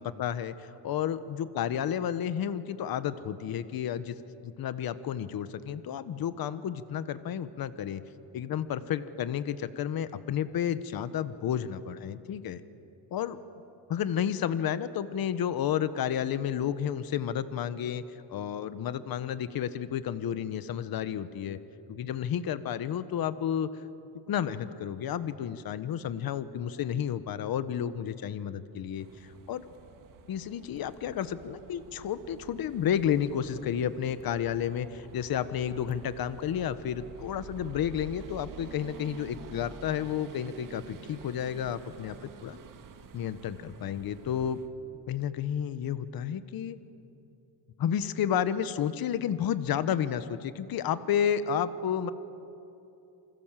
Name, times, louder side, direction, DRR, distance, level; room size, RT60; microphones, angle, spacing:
voice 1, 0.0-4.1 4.4-8.0 8.3-12.6 13.1-13.4 13.9-18.0 18.3-21.6 21.9-23.7 24.3-29.6 30.3-42.2 42.4-42.6 43.1-44.6 45.1-46.8 47.8-52.1, left 9 dB, 55° left, 13 dB, 1.2 m, -31 dB
sound 1, 29.0-44.7, right 6 dB, 45° right, 1.8 m, -49 dB
28.5 x 25.0 x 7.5 m, 2.8 s
cardioid pair, 125°, 43 cm